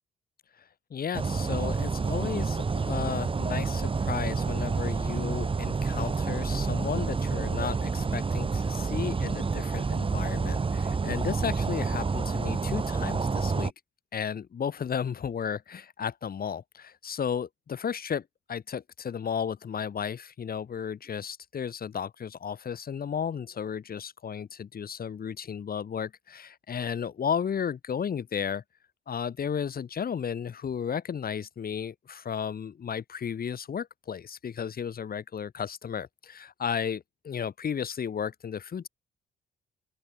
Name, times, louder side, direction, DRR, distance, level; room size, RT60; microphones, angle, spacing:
voice 1, 0.9-13.7 14.1-28.6 29.1-38.9, left 7 dB, 50° left, 2.8 m, -34 dB
sound 1, 1.1-13.7, right 4 dB, 25° right, 1.4 m, -29 dB
open air
cardioid pair, 90°, 20 cm